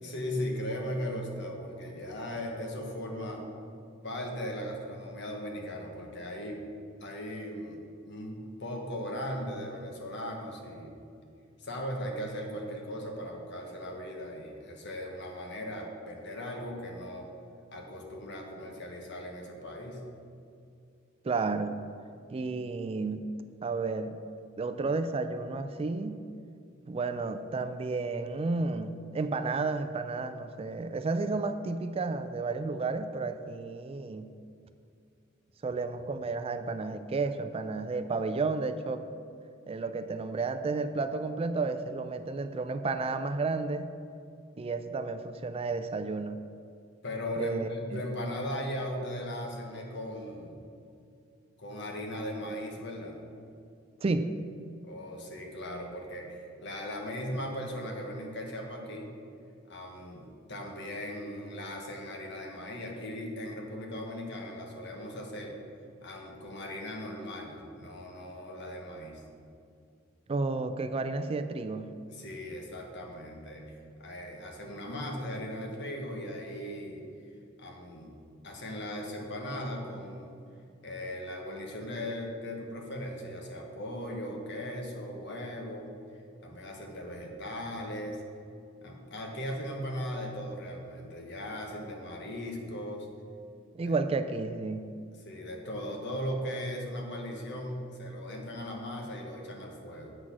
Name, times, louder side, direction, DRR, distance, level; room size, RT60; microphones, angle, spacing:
voice 1, 0.0-3.4 4.0-6.6 7.0-7.8 8.0-10.9 11.6-17.3 17.7-20.0 47.0-50.6 51.6-53.2 54.8-59.1 59.7-65.6 66.0-69.2 72.1-77.0 77.6-78.1 78.4-80.3 80.8-85.9 86.4-88.2 88.8-93.1 93.8-93.9 95.2-100.1, equal, 60° left, 1 dB, 1.4 m, -38 dB
voice 2, 21.2-21.8 22.3-23.2 23.6-24.1 24.6-26.2 26.9-34.3 35.6-39.0 39.7-43.9 44.6-46.4 47.4-48.0 54.0-54.3 70.3-71.9 93.7-94.9, right 3 dB, 30° right, 10 dB, 0.3 m, -32 dB
7.7 x 6.2 x 6.0 m, 2.4 s
head